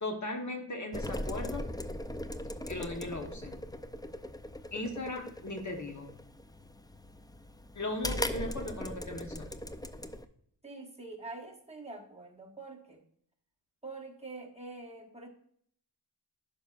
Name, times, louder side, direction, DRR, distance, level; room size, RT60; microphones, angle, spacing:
voice 1, 0.0-1.7 2.7-3.6 4.7-6.1 7.7-9.5, left 2 dB, 40° left, 3 dB, 1.1 m, -37 dB
sound 1, 0.9-10.2, left 1 dB, 10° left, 0.4 m, -39 dB
voice 2, 10.6-13.0 13.8-15.3, right 3 dB, 15° right, 0 dB, 1.4 m, -45 dB
11.5 x 5.5 x 2.4 m, 0.65 s
wide cardioid pair, 65°, 42 cm